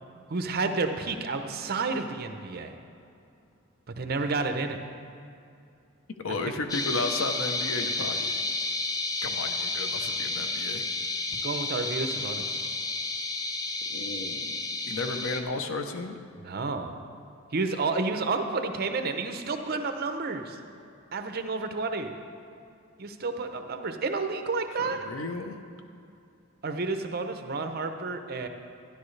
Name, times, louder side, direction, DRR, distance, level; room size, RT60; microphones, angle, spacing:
voice 1, 0.3-2.8 3.9-4.8 6.3-6.4 11.3-12.6 16.4-17.0 17.5-20.6 21.1-22.1 23.0-25.1 26.6-28.5, right 3 dB, 50° right, 7 dB, 0.7 m, -30 dB
voice 2, 6.2-8.4 9.2-10.8 13.9-14.6 14.9-16.1 24.8-25.6, left 3 dB, 75° left, 6 dB, 0.8 m, -33 dB
sound 1, 6.7-15.4, left 3 dB, 20° left, 0.5 m, -31 dB
12.5 x 10.5 x 3.2 m, 2.6 s
head